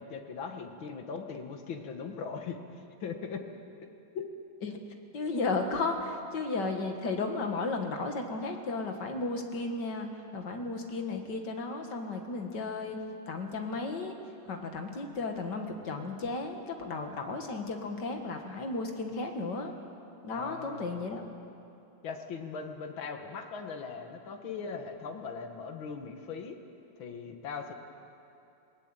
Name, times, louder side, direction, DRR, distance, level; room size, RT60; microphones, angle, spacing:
voice 1, 0.0-3.9 4.1-4.3 20.3-20.9 22.0-26.6 27.0-27.7, left 5 dB, 85° left, 5 dB, 2.3 m, -40 dB
voice 2, 5.1-13.0 13.3-14.1 14.5-19.7 20.2-21.2, left 3 dB, 60° left, 4 dB, 2.4 m, -34 dB
20.5 x 19.0 x 9.0 m, 2.7 s
omnidirectional pair, 2.1 m